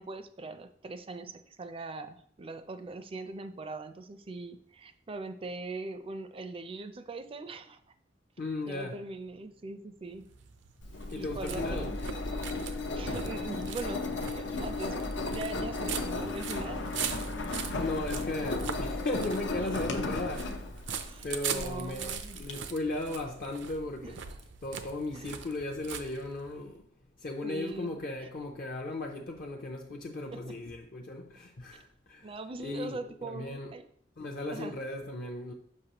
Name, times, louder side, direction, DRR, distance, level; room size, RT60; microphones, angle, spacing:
voice 1, 0.0-7.8 8.7-10.3 11.2-12.0 12.9-15.0 15.3-17.2 19.6-19.8 20.9-22.4 24.0-24.4 25.1-25.4 27.4-28.3 30.3-30.6 32.2-33.8 34.5-34.8, right 3 dB, 30° right, 0.4 m, -41 dB
voice 2, 8.4-9.0 11.1-11.9 17.8-20.6 21.2-24.1 24.6-26.9 27.2-32.3 32.6-33.7 34.2-35.5, left 2 dB, 55° left, 0.5 m, -36 dB
sound 1, 10.1-26.6, right 7 dB, 85° right, 0.5 m, -41 dB
Engine, 10.8-22.5, left 3 dB, 90° left, 0.7 m, -35 dB
6.5 x 5.3 x 2.9 m
head